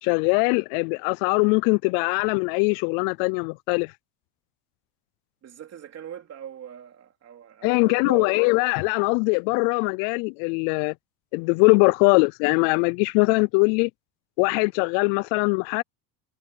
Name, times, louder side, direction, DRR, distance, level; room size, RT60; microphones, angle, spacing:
voice 1, 0.0-3.9 7.6-10.9 11.3-13.9 14.4-15.8, left 31 dB, 70° left, 0.5 m, -21 dB
voice 2, 5.4-8.3, right 9 dB, 35° right, 3.5 m, -41 dB
supercardioid pair, 115°, 41 cm